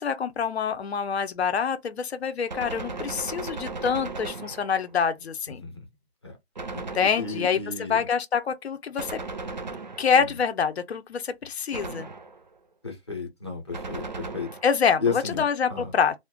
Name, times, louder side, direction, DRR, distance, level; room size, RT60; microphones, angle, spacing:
voice 1, 0.0-5.6 6.7-7.6 7.9-9.2 10.0-12.1 14.6-16.1, left 6 dB, 75° left, 0.6 m, -26 dB
Gunshot gunfire, 2.5-5.0 6.6-7.6 9.0-10.4 11.7-12.5 13.7-14.9, right 3 dB, 45° right, 0.5 m, -37 dB
voice 2, 5.5-5.9 6.2-6.4 7.2-8.1 10.1-10.4 12.8-14.5 15.0-15.9, left 4 dB, 25° left, 0.6 m, -33 dB
2.4 x 2.1 x 3.6 m
hypercardioid pair, 170°, 32 cm